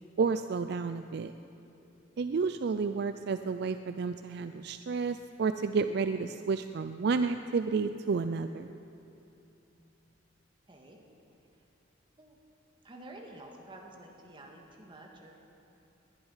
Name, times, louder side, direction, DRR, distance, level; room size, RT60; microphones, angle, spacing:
voice 1, 0.2-1.3 2.2-8.7, right 5 dB, 60° right, 10 dB, 0.4 m, -31 dB
voice 2, 10.7-11.0 12.2-12.4 12.8-15.3, right 1 dB, 25° right, 0 dB, 1.9 m, -50 dB
20.0 x 11.0 x 5.7 m, 2.8 s
head